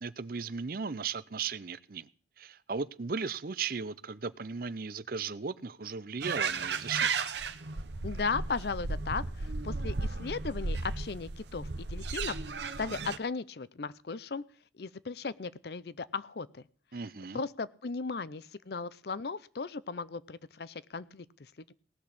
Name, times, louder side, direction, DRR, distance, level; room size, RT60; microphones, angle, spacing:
voice 1, 0.0-2.1 2.4-7.1 16.9-17.4, right 5 dB, 50° right, 0.6 m, -36 dB
sound 1, 6.2-13.2, right 4 dB, 70° right, 0.9 m, -34 dB
voice 2, 8.0-14.4 14.8-16.6 17.3-21.7, left 4 dB, 60° left, 0.6 m, -37 dB
18.0 x 6.2 x 8.5 m
head